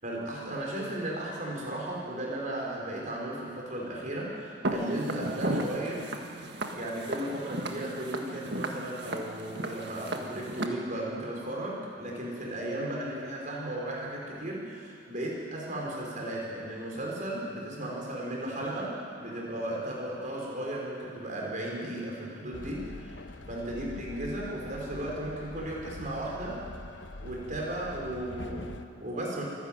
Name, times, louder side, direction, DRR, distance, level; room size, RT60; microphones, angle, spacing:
voice 1, 0.0-6.0 6.7-23.2 23.5-26.6 27.2-29.4, right 1 dB, 40° right, -3 dB, 5.2 m, -35 dB
Walk footsteps, 4.6-10.7, right 1 dB, 60° right, 1.8 m, -35 dB
Train, 22.5-28.8, left 2 dB, 65° left, 1.0 m, -44 dB
24.5 x 12.0 x 9.2 m, 2.4 s
head